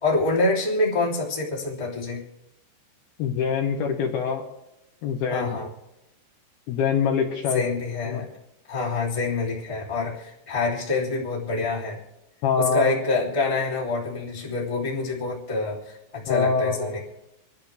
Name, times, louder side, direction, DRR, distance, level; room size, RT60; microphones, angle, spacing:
voice 1, 0.0-2.2 5.3-5.7 7.5-8.3 8.7-12.0 12.6-17.0, left 3 dB, 10° left, -5 dB, 2.2 m, -26 dB
voice 2, 3.2-4.4 5.0-5.6 6.7-7.7 8.1-8.3 12.4-12.9 16.3-17.0, left 6 dB, 70° left, 1 dB, 2.8 m, -24 dB
28.0 x 11.0 x 3.4 m, 0.89 s
omnidirectional pair, 5.2 m